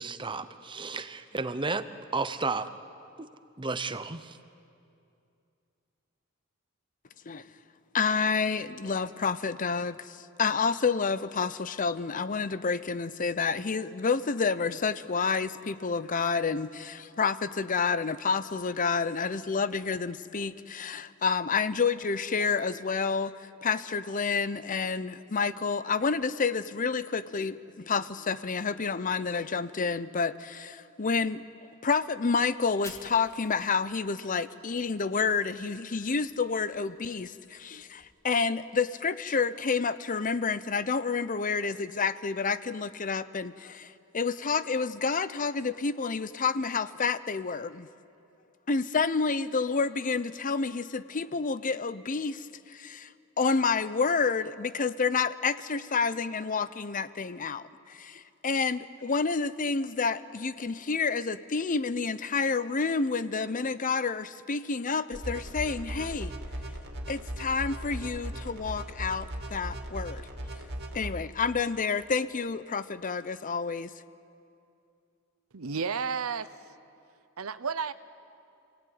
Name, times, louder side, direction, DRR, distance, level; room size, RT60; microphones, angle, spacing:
voice 1, 0.0-1.9 2.1-2.7 3.2-3.3 3.6-4.4, right 3 dB, 25° right, 11 dB, 0.9 m, -32 dB
voice 2, 7.9-31.4 31.8-47.9 48.7-53.1 53.4-66.3 67.1-70.2 70.9-73.9, left 5 dB, 40° left, 14 dB, 0.7 m, -29 dB
Fire, 32.5-35.6 36.0-38.0, left 1 dB, 15° left, 2.6 m, -54 dB
sound 1, 65.1-71.1, right 1 dB, 50° right, 2.7 m, -38 dB
voice 3, 75.5-76.5 77.4-77.9, right 6 dB, 85° right, 13 dB, 0.8 m, -31 dB
28.0 x 17.5 x 9.5 m, 2.6 s
head